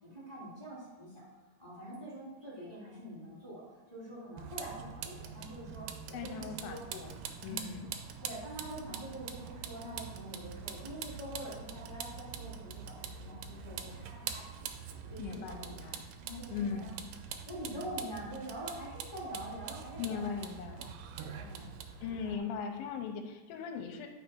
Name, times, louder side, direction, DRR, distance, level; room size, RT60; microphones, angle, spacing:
voice 1, 0.0-1.2 1.6-6.8 7.4-7.8 8.2-14.7 15.1-15.8 16.2-16.9 17.5-20.4 21.2-21.7 22.1-22.4, right 1 dB, 10° left, -9 dB, 2.1 m, -45 dB
Vehicle, 4.4-22.3, right 7 dB, 80° right, 2.1 m, -44 dB
voice 2, 6.1-7.1 7.4-7.9 15.2-16.1 16.5-17.0 20.0-20.9 22.0-24.1, left 6 dB, 90° left, 5 dB, 2.5 m, -39 dB
11.0 x 3.9 x 4.5 m, 1.1 s
omnidirectional pair, 4.3 m